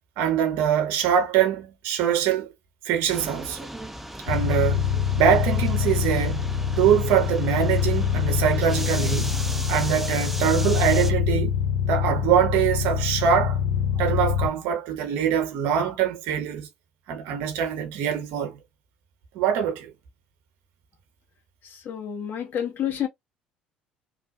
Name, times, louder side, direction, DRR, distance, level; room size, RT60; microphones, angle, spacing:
voice 1, 0.2-2.5 2.8-3.7 4.3-6.4 6.8-11.5 11.9-13.6 14.0-16.7 17.1-18.6 19.3-19.9, right 9 dB, 65° right, 0.9 m, -23 dB
sound 1, 3.1-11.1, right 1 dB, 5° right, 0.4 m, -37 dB
sound 2, 4.3-14.5, left 8 dB, 65° left, 0.7 m, -25 dB
voice 2, 21.7-23.1, left 9 dB, 50° left, 1.3 m, -29 dB
3.2 x 2.3 x 2.4 m
hypercardioid pair, 55°, 4 cm